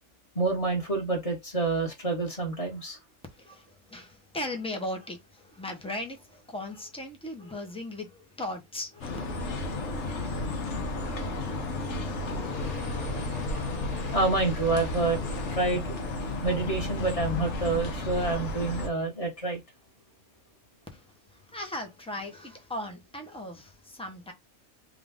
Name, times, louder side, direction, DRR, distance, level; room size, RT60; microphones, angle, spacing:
voice 1, 0.3-3.0 10.3-10.5 11.1-11.7 12.3-12.5 13.8-13.9 14.1-15.2 15.5-15.9 16.4-19.6, right 3 dB, 25° left, 1.4 m, -28 dB
voice 2, 3.3-9.2 20.9-24.3, left 1 dB, 5° left, 0.7 m, -38 dB
sound 1, 9.0-18.9, left 2 dB, 60° left, 1.1 m, -33 dB
Fire, 12.2-15.9, left 1 dB, 75° left, 1.8 m, -39 dB
3.8 x 2.5 x 3.5 m
omnidirectional pair, 1.5 m